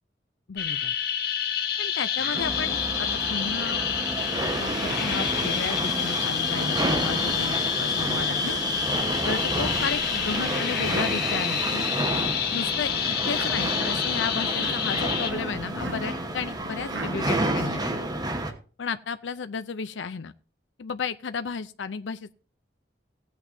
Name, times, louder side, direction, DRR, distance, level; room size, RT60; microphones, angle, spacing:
voice 1, 0.5-0.9 1.8-3.8 4.6-8.5 9.2-11.9 12.5-18.0 18.8-20.3 20.8-22.3, left 5 dB, 85° left, 0.5 m, -33 dB
sound 1, 0.6-15.3, left 8 dB, 55° left, 1.7 m, -28 dB
Human voice, 2.1-2.4 3.5-3.8 4.8-5.1 5.9-6.2 7.2-7.5 8.4-8.8 9.7-10.0 10.8-11.1 11.9-12.3 13.3-13.5 14.5-14.8 15.8-16.1 16.9-17.2, right 2 dB, 80° right, 1.4 m, -39 dB
sound 2, 2.3-18.5, right 1 dB, 20° right, 1.1 m, -30 dB
17.0 x 8.6 x 2.7 m
head